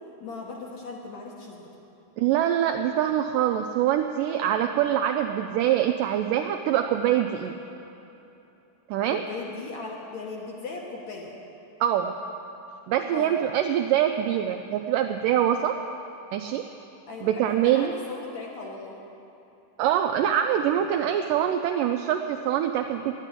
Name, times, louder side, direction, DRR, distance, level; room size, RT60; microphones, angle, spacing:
voice 1, 0.2-1.7 9.1-11.3 13.1-13.4 17.1-19.0, left 4 dB, 65° left, -1 dB, 2.0 m, -38 dB
voice 2, 2.2-7.5 8.9-9.2 11.8-12.1 12.9-15.8 16.3-16.6 17.2-17.9 19.8-23.1, right 10 dB, 90° right, 5 dB, 1.9 m, -24 dB
11.5 x 9.1 x 9.8 m, 3.0 s
omnidirectional pair, 4.3 m